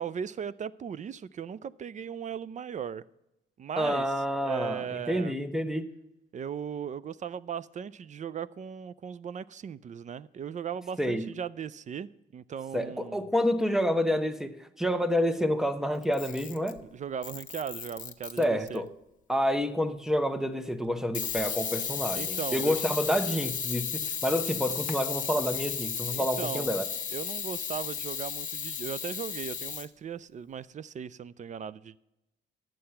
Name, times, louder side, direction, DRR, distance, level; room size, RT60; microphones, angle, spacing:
voice 1, 0.0-3.0 3.6-4.1 4.4-5.3 6.3-13.3 16.9-18.8 22.1-22.9 26.1-26.7 27.1-32.0, right 7 dB, 40° right, 0.4 m, -37 dB
voice 2, 3.8-5.9 11.0-11.3 12.7-16.8 18.4-18.9 19.3-26.9, equal, ahead, 0.9 m, -28 dB
Camera, 16.0-16.8 17.2-18.8 21.1-29.9, left 7 dB, 40° left, 1.0 m, -34 dB
11.0 x 7.7 x 5.7 m
cardioid pair, 90°, 20 cm